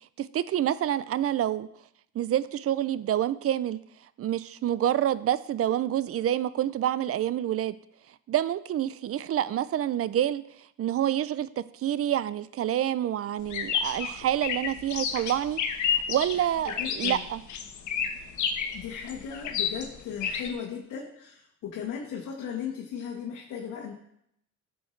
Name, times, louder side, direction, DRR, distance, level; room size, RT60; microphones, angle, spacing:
voice 1, 0.2-1.7 2.1-3.8 4.2-7.7 8.3-10.4 10.8-15.6 16.1-17.4, right 11 dB, 50° right, 17 dB, 0.5 m, -27 dB
sound 1, 13.5-20.5, left 7 dB, 70° left, 1.1 m, -30 dB
voice 2, 16.3-17.2 18.7-23.9, left 7 dB, 90° left, -1 dB, 1.3 m, -37 dB
12.5 x 7.0 x 3.2 m, 0.75 s
cardioid pair, 90°, 30 cm